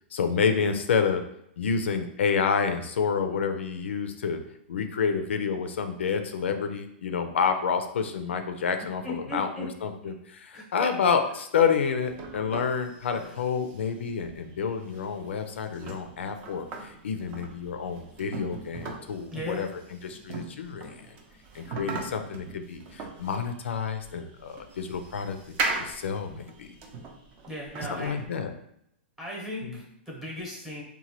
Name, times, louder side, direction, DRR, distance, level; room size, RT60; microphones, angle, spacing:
voice 1, 0.1-1.2 1.6-4.4 4.7-21.0 21.5-26.8 27.9-28.5 29.6-29.8, left 6 dB, 90° left, 7 dB, 0.3 m, -29 dB
voice 2, 9.0-9.6 10.0-10.1 10.5-10.9 13.1-13.3 19.3-19.6 27.5-28.2 29.2-30.8, left 1 dB, 5° right, -3 dB, 0.9 m, -37 dB
sound 1, 12.1-28.3, right 3 dB, 30° right, 0.5 m, -39 dB
3.0 x 2.1 x 2.8 m, 0.76 s
hypercardioid pair, 140°, 6 cm